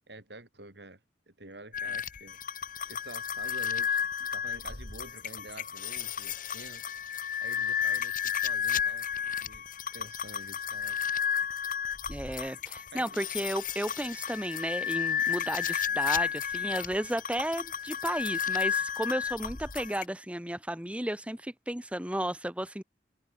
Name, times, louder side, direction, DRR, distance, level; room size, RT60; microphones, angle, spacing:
voice 1, 0.1-1.0 1.3-6.8 7.4-9.1 9.4-9.7 9.9-11.0 12.9-13.2, right 2 dB, 65° right, 7.4 m, -48 dB
sound 1, 1.7-20.0, left 8 dB, 50° left, 2.2 m, -32 dB
voice 2, 12.1-22.8, right 1 dB, 5° right, 1.6 m, -33 dB
head